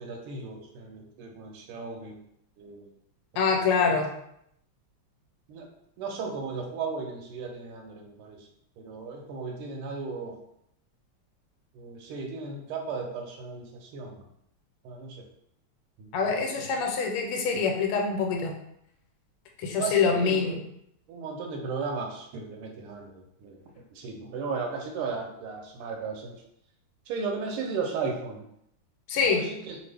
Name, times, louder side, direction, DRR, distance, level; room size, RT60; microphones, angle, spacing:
voice 1, 0.0-2.2 2.6-2.9 3.8-4.0 5.5-5.7 6.0-8.5 8.8-10.4 11.7-14.2 14.8-15.3 16.0-16.1 19.7-20.6 21.1-26.4 27.1-28.4 29.3-29.8, right 4 dB, 85° right, 1 dB, 1.5 m, -35 dB
voice 2, 3.4-4.1 16.1-18.6 19.6-20.6 29.1-29.4, left 5 dB, 85° left, 2 dB, 1.5 m, -25 dB
3.4 x 2.4 x 3.3 m, 0.75 s
omnidirectional pair, 2.4 m